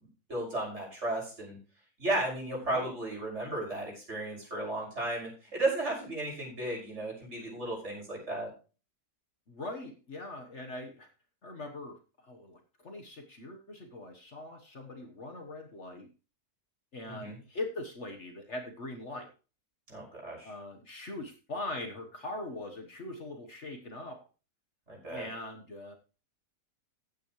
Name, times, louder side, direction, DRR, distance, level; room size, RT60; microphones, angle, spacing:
voice 1, 0.3-1.6 2.0-8.5 17.1-17.4 19.9-20.5 24.9-25.3, right 2 dB, 45° right, -2 dB, 6.7 m, -34 dB
voice 2, 9.5-11.1 11.4-16.1 16.9-19.3 20.4-24.2 25.1-25.9, left 2 dB, 50° left, 4 dB, 1.6 m, -41 dB
15.0 x 9.1 x 3.2 m, 0.34 s
omnidirectional pair, 1.7 m